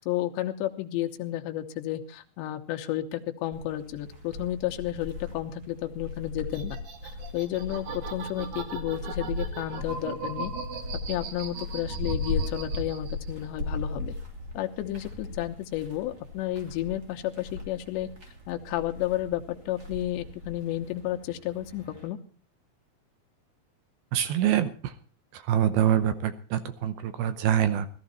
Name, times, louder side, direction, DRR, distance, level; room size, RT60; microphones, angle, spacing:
voice 1, 0.0-6.8 7.3-10.5 11.1-14.1 14.5-18.1 18.5-22.2, left 13 dB, 75° left, 5 dB, 3.3 m, -32 dB
sound 1, 3.5-22.1, left 2 dB, 25° right, 2.7 m, -38 dB
sound 2, 6.5-13.5 13.8-14.6, right 5 dB, 55° right, 2.3 m, -39 dB
voice 2, 24.1-24.9 25.3-27.9, right 10 dB, 75° right, 11 dB, 2.4 m, -25 dB
18.0 x 13.0 x 4.2 m, 0.40 s
omnidirectional pair, 5.2 m